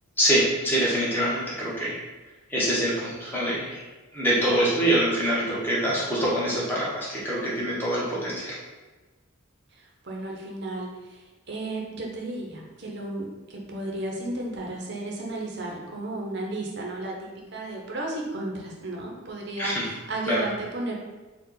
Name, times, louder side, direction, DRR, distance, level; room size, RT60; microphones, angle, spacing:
voice 1, 0.2-2.0 2.5-3.8 4.1-8.5 19.6-19.9 20.3-20.4, right 1 dB, 10° left, -7 dB, 1.2 m, -25 dB
voice 2, 9.7-20.9, right 2 dB, 55° right, -1 dB, 0.8 m, -34 dB
4.3 x 2.4 x 4.0 m, 1.3 s
head